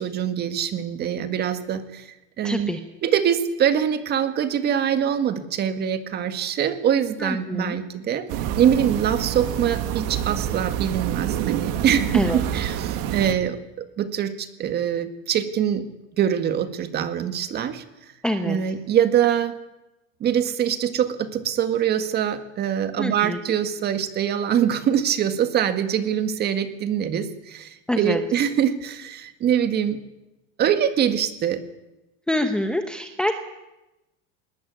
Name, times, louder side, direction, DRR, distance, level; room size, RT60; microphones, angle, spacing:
voice 1, 0.0-2.1 2.4-2.7 3.0-8.3 8.6-15.8 16.2-17.8 18.4-19.6 20.2-30.0 30.6-31.6, right 9 dB, 25° right, 10 dB, 1.9 m, -24 dB
voice 2, 2.4-2.8 7.2-7.8 12.1-12.4 18.2-18.6 23.0-23.4 27.9-28.2 32.3-33.3, left 1 dB, ahead, 5 dB, 1.1 m, -25 dB
sound 1, 8.3-13.3, right 10 dB, 45° right, 1.9 m, -27 dB
20.5 x 20.0 x 9.6 m, 0.99 s
supercardioid pair, 160°, 36 cm